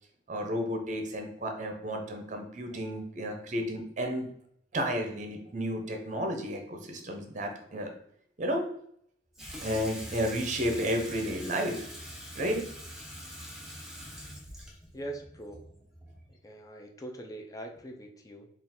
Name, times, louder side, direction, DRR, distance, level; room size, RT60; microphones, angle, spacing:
voice 1, 0.3-4.3 4.7-7.9 8.4-8.7 9.6-11.9 12.4-12.6, equal, 45° right, 4 dB, 0.7 m, -32 dB
Water tap faucet / Sink (filling or washing), 9.3-16.4, equal, 5° right, 0.8 m, -44 dB
voice 2, 14.9-15.7 16.3-18.5, right 1 dB, 20° left, 3 dB, 0.5 m, -42 dB
3.6 x 2.4 x 4.2 m, 0.67 s
head